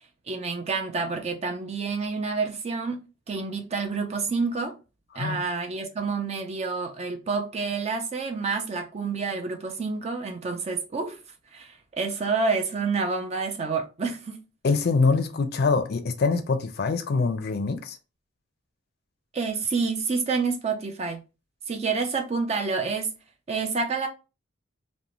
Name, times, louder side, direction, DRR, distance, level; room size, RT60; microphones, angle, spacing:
voice 1, 0.3-3.0 3.3-4.7 5.2-11.2 11.5-14.4 19.3-21.2 21.7-23.1 23.5-24.1, right 4 dB, 35° right, 0.4 m, -28 dB
voice 2, 14.6-18.0, left 4 dB, 55° left, 0.4 m, -24 dB
2.5 x 2.1 x 2.9 m
head